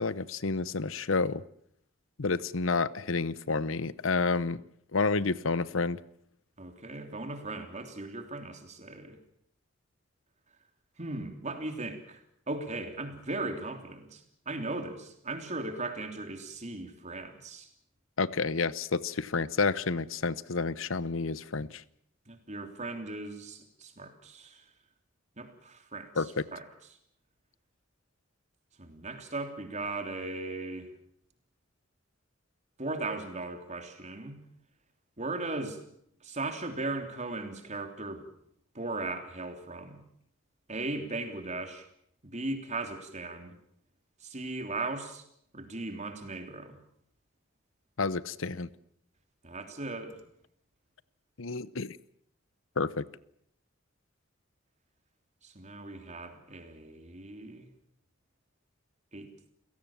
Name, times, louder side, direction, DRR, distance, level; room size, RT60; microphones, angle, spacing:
voice 1, 0.0-1.4 2.2-4.6 4.9-6.0 18.2-21.8 26.2-26.4 48.0-48.7 51.4-52.0 52.8-53.0, left 4 dB, 90° left, 18 dB, 0.9 m, -30 dB
voice 2, 6.6-9.2 11.0-17.7 22.3-24.6 25.4-26.3 26.5-26.6 28.8-30.9 32.8-34.4 35.2-35.8 36.2-38.2 38.7-40.0 40.7-41.9 42.2-43.6 44.2-45.2 45.5-46.8 49.4-50.2 55.4-57.7 59.1-59.3, right 2 dB, 35° right, 6 dB, 3.3 m, -37 dB
29.5 x 17.0 x 7.4 m, 0.69 s
head